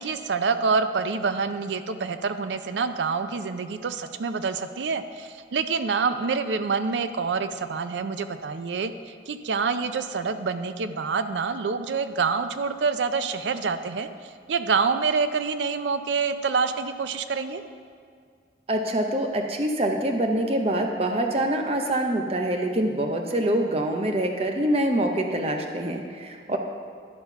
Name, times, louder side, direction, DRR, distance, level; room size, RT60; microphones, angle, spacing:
voice 1, 0.0-14.1 14.5-17.6 26.5-26.6, right 5 dB, 85° right, 10 dB, 0.5 m, -27 dB
voice 2, 18.7-26.6, right 1 dB, 35° right, 3 dB, 0.7 m, -25 dB
11.5 x 4.3 x 5.7 m, 2.1 s
head